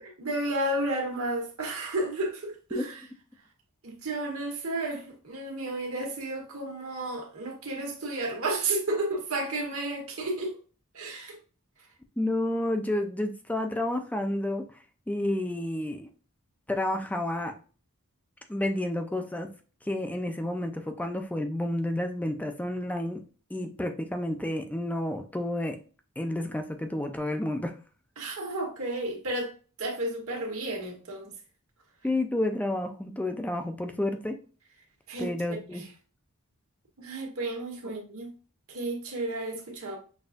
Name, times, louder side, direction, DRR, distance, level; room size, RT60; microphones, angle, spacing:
voice 1, 0.2-3.0 3.8-10.6 10.9-11.4 28.2-29.5 29.8-31.3 35.1-35.3 37.0-38.3 38.7-40.0, right 2 dB, 90° right, 1.4 m, -32 dB
voice 2, 12.2-14.7 15.1-16.1 16.7-17.5 18.5-19.5 19.8-23.2 23.5-25.8 26.2-27.7 32.0-34.4 35.2-35.8, left 1 dB, 5° left, 0.4 m, -30 dB
6.1 x 2.6 x 2.5 m
head